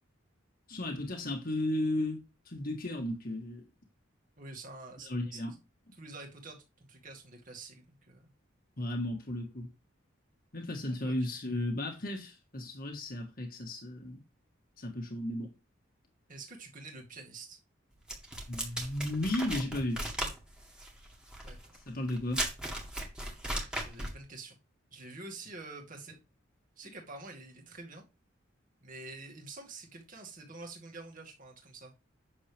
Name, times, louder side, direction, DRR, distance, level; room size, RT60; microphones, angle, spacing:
voice 1, 0.7-3.6 5.0-5.5 8.8-9.7 10.5-14.2 14.8-15.5 18.5-20.0 21.9-22.5, left 1 dB, 45° left, 1.6 m, -34 dB
voice 2, 4.4-5.4 6.0-8.3 10.9-11.3 16.3-17.6 21.4-21.8 23.7-24.6 24.9-26.2 26.8-28.0 28.8-31.9, right 3 dB, 40° right, 2.3 m, -47 dB
sound 1, 18.1-24.2, right 1 dB, 5° right, 2.0 m, -37 dB
9.0 x 6.6 x 3.4 m
head